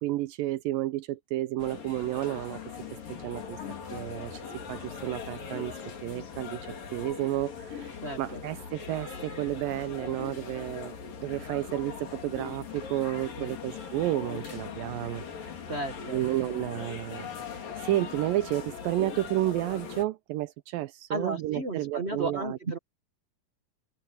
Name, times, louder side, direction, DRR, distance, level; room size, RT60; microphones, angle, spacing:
voice 1, 0.0-2.6 3.1-3.6 3.9-4.4 4.7-5.7 6.0-6.6 6.9-15.2 16.1-22.8, right 15 dB, 85° right, 2.5 m, -31 dB
sound 1, 1.6-20.0, left 6 dB, 75° left, 5.1 m, -40 dB
voice 2, 8.0-8.4 13.4-13.5 15.7-16.2 21.1-22.8, right 2 dB, 40° right, 0.9 m, -34 dB
omnidirectional pair, 4.0 m